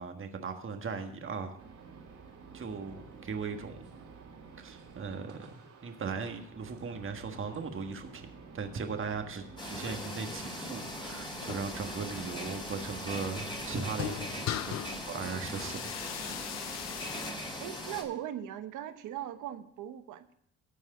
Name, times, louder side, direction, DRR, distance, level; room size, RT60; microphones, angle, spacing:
voice 1, 0.0-1.6 2.5-3.9 4.6-5.5 5.8-8.3 8.5-14.8 15.1-16.7, right 5 dB, 45° right, 6 dB, 1.5 m, -38 dB
sound 1, 1.6-13.7, right 5 dB, 70° right, 3.4 m, -51 dB
sound 2, 9.6-18.0, left 1 dB, 15° left, 3.1 m, -40 dB
sound 3, 11.0-17.3, left 11 dB, 60° left, 0.6 m, -41 dB
voice 2, 17.6-20.3, right 11 dB, 85° right, 10 dB, 1.0 m, -39 dB
13.5 x 4.7 x 7.7 m, 0.71 s
cardioid pair, 90°, 30 cm